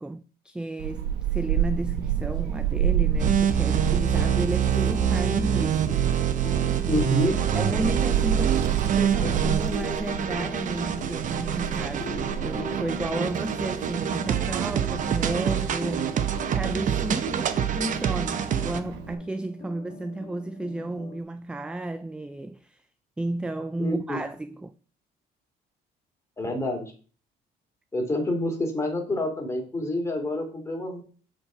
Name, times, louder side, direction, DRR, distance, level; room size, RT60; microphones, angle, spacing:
voice 1, 0.0-6.1 7.5-8.7 8.9-16.2 16.5-22.8 23.2-24.7, right 2 dB, 5° right, 0.3 m, -33 dB
Child speech kid speaking / Wind, 0.8-19.1, right 9 dB, 85° right, 1.0 m, -30 dB
sound 1, 3.2-18.8, right 8 dB, 50° right, 0.7 m, -26 dB
sound 2, 3.7-21.2, left 5 dB, 40° left, 1.2 m, -43 dB
voice 2, 6.9-7.4 23.8-24.2 26.4-26.9 27.9-31.0, left 1 dB, 15° left, 2.6 m, -28 dB
7.6 x 4.6 x 5.0 m
cardioid pair, 110°, 17 cm